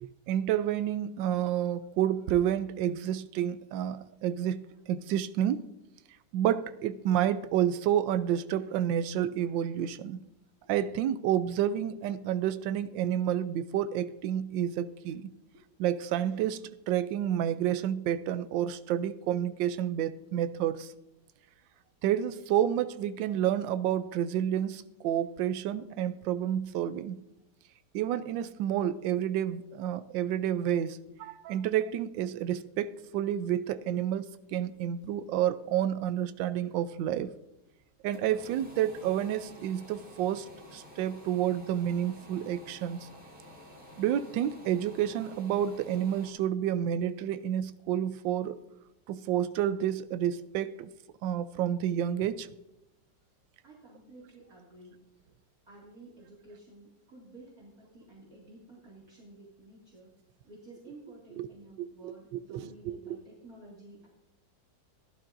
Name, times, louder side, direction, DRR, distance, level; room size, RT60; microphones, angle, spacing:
voice 1, 0.0-5.6 6.3-10.2 10.7-15.3 15.8-20.9 22.0-27.2 27.9-37.3 38.0-43.1 44.0-48.6 49.1-50.9 51.2-52.5 61.4-61.5 61.8-63.2, right 10 dB, 85° right, 1.3 m, -30 dB
sound 1, 37.8-46.3, left 1 dB, 35° right, 3.6 m, -51 dB
voice 2, 53.6-55.0 55.7-60.2 60.4-64.1, right 2 dB, 50° right, 2.7 m, -52 dB
16.0 x 11.5 x 2.6 m
omnidirectional pair, 2.0 m